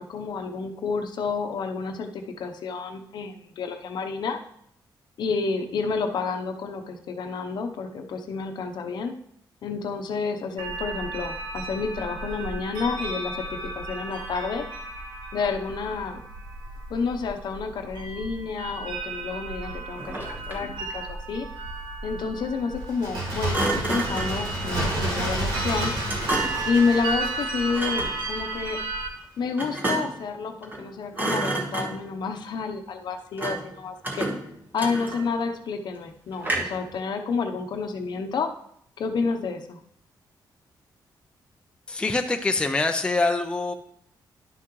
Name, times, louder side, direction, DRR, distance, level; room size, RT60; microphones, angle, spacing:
voice 1, 0.0-4.4 5.2-9.1 9.6-14.7 15.3-16.2 16.9-21.5 22.0-25.9 26.6-28.8 29.4-34.3 34.7-38.5 39.0-39.8, left 5 dB, 65° left, 5 dB, 0.8 m, -29 dB
sound 1, 10.6-29.1, right 3 dB, 90° right, 1.0 m, -34 dB
Thump thud, 20.0-20.8 23.5-24.4 26.1-26.7 27.7-28.2 29.6-30.3 30.6-30.9 31.1-32.2 33.4-33.7 34.0-35.4 36.4-36.9, right 2 dB, 25° right, 1.4 m, -29 dB
Bird, 22.8-28.4 28.7-28.8, right 1 dB, 70° right, 2.6 m, -30 dB
voice 2, 41.9-43.7, left 3 dB, 10° left, 5 dB, 0.5 m, -24 dB
11.0 x 5.9 x 3.1 m, 0.69 s
cardioid pair, 135°, 8 cm